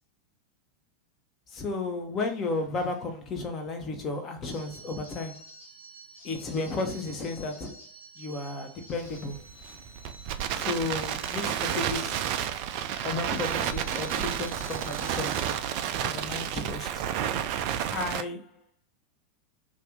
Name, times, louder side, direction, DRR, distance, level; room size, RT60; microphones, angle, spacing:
voice 1, 1.5-5.5 6.2-7.9 8.2-9.4 10.5-12.3 13.0-15.5 16.0-17.1 17.9-18.6, left 3 dB, 30° left, 0.8 m, -33 dB
sound 1, 4.4-15.6, equal, 75° left, 1.7 m, -50 dB
Crackle, 9.0-18.2, right 10 dB, 45° right, 0.3 m, -31 dB
2.6 x 2.5 x 3.6 m
figure-of-eight pair, 90°, 0 cm